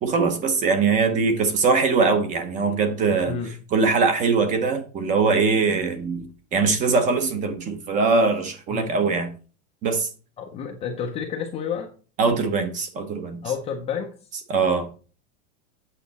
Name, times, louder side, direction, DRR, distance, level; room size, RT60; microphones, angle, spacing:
voice 1, 0.0-3.4 3.7-6.3 6.5-9.3 9.8-10.1 12.2-13.4 14.5-15.0, right 4 dB, 20° right, 0.8 m, -22 dB
voice 2, 3.3-3.6 8.7-8.9 10.4-11.9 13.4-14.1, left 7 dB, 15° left, 0.6 m, -30 dB
8.4 x 5.8 x 4.0 m
supercardioid pair, 165°, 39 cm